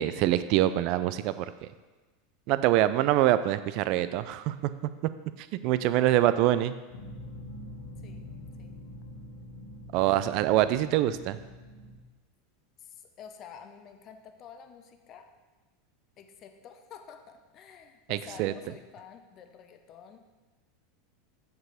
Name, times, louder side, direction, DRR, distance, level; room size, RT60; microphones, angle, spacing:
voice 1, 0.0-1.7 2.5-4.7 5.4-6.8 9.9-11.4 18.1-18.5, right 13 dB, 50° right, 13 dB, 0.3 m, -25 dB
voice 2, 5.8-6.1 8.0-8.3 8.6-8.8 10.0-10.3 12.8-15.3 16.2-20.2, left 7 dB, 40° left, 6 dB, 0.7 m, -49 dB
sound 1, 6.9-12.0, left 1 dB, 65° left, 1.4 m, -44 dB
6.7 x 4.6 x 5.1 m, 1.2 s
figure-of-eight pair, 85°, 0 cm